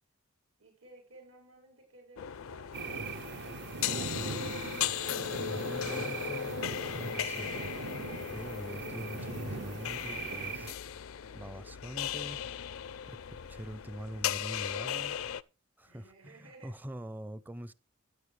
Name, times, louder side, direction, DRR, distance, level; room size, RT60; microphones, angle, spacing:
voice 1, 0.6-3.6 15.9-16.7, right 2 dB, 80° right, 5.3 m, -56 dB
sound 1, 2.2-15.4, left 9 dB, 80° left, 0.5 m, -37 dB
sound 2, 2.7-10.7, right 4 dB, 55° right, 0.7 m, -40 dB
voice 2, 5.4-6.5 6.9-7.9 8.3-10.7 11.3-12.5 13.1-13.2 13.5-15.2 15.8-17.7, equal, 10° right, 0.5 m, -44 dB
13.5 x 9.6 x 3.3 m
head